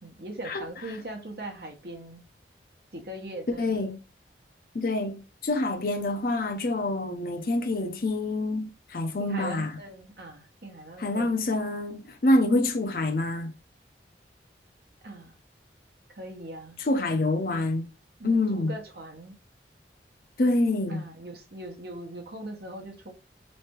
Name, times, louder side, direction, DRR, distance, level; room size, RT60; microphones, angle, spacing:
voice 1, 0.0-2.2 2.9-3.9 9.2-11.4 15.0-15.4 16.1-16.8 18.2-19.3 20.9-23.1, right 1 dB, 60° right, 1.0 m, -40 dB
voice 2, 3.6-4.0 4.7-9.7 11.0-13.5 16.8-17.8 18.2-18.7 20.4-21.0, left 2 dB, 55° left, 0.5 m, -26 dB
3.3 x 3.2 x 2.9 m
head